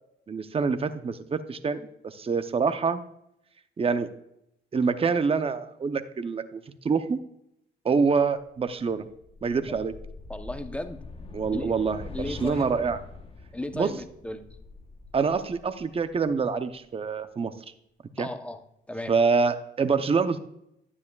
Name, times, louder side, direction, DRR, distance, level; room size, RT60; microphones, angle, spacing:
voice 1, 0.3-3.0 3.8-4.1 4.7-7.2 7.8-9.1 9.4-9.9 11.3-13.0 13.7-13.9 15.1-17.5 18.2-18.3 19.1-20.4, right 5 dB, 30° right, 10 dB, 0.7 m, -26 dB
sound 1, 8.8-16.8, left 3 dB, 30° left, 1.0 m, -44 dB
voice 2, 10.3-11.0 11.5-11.7 12.1-12.9 13.5-14.4 18.2-18.6 18.9-19.2, left 1 dB, 5° left, 8 dB, 0.8 m, -35 dB
12.0 x 9.6 x 2.3 m, 0.78 s
cardioid pair, 90°, 20 cm